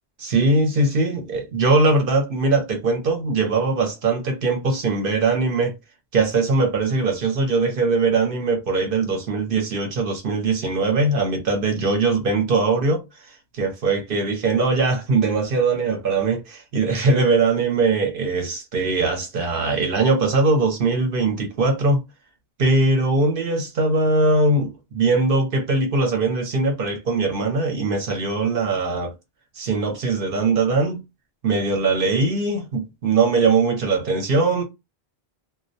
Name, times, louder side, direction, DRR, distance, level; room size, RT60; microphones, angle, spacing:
voice 1, 0.2-5.7 6.1-13.0 13.5-22.0 22.6-29.1 29.6-31.0 31.4-34.6, right 3 dB, 60° right, 0.8 m, -21 dB
2.2 x 2.1 x 2.6 m
omnidirectional pair, 1.1 m